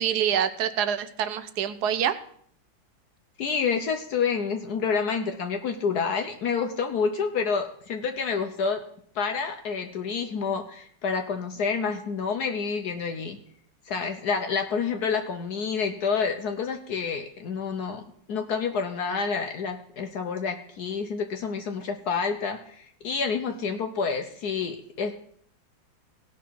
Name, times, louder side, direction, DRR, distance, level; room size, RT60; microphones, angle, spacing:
voice 1, 0.0-2.1, right 9 dB, 65° right, 12 dB, 1.2 m, -26 dB
voice 2, 3.4-8.8 9.1-13.4 13.9-18.0 18.3-25.1, left 5 dB, 60° left, 5 dB, 1.2 m, -28 dB
17.5 x 6.1 x 4.6 m, 0.63 s
omnidirectional pair, 2.1 m